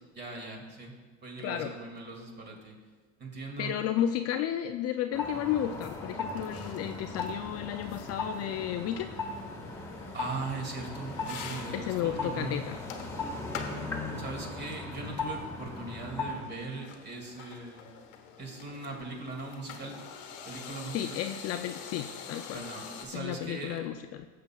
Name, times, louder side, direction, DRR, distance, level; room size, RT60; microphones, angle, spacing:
voice 1, 0.1-0.9 1.2-2.8 3.2-3.7 10.1-12.6 14.1-17.9 18.4-20.0 20.5-21.2 22.5-23.9, right 3 dB, 30° right, 0 dB, 2.2 m, -40 dB
voice 2, 1.4-1.7 3.6-9.1 11.7-12.8 20.9-22.6 23.1-24.3, left 11 dB, 45° left, 7 dB, 0.4 m, -32 dB
sound 1, 5.1-16.5, left 3 dB, 10° left, 1.5 m, -38 dB
sound 2, 5.5-23.1, left 7 dB, 85° left, 1.2 m, -47 dB
14.0 x 7.5 x 2.3 m, 1.4 s
supercardioid pair, 115°, 36 cm